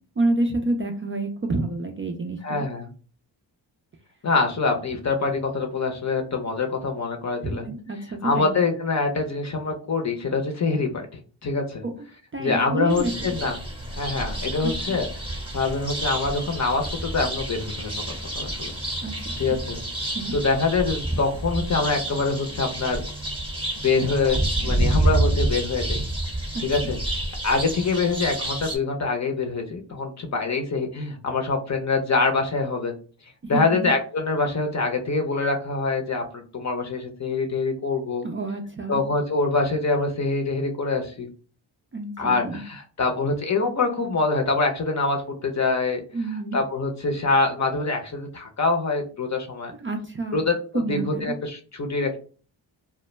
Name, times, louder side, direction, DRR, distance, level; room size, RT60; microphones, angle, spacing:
voice 1, 0.2-2.6 7.4-8.6 11.8-11.9 12.3-13.1 14.6-14.7 19.0-19.2 19.5-19.6 20.1-20.3 26.5-26.6 33.4-33.9 38.2-39.0 41.9-42.6 46.1-46.6 49.7-50.4 50.7-51.3, right 2 dB, 30° right, 3 dB, 0.4 m, -28 dB
voice 2, 2.4-2.9 4.2-7.7 8.2-11.8 12.4-13.6 14.0-15.1 15.5-18.7 19.4-19.8 20.3-23.0 23.8-24.4 24.6-26.0 26.6-27.0 27.4-32.9 33.5-38.3 38.9-41.3 42.2-46.0 46.5-49.7 50.3-50.5 50.9-52.2, left 3 dB, 35° left, 3 dB, 0.7 m, -25 dB
sound 1, 12.9-28.8, right 1 dB, 10° right, 0.9 m, -28 dB
2.1 x 2.1 x 3.0 m, 0.39 s
cardioid pair, 50°, 47 cm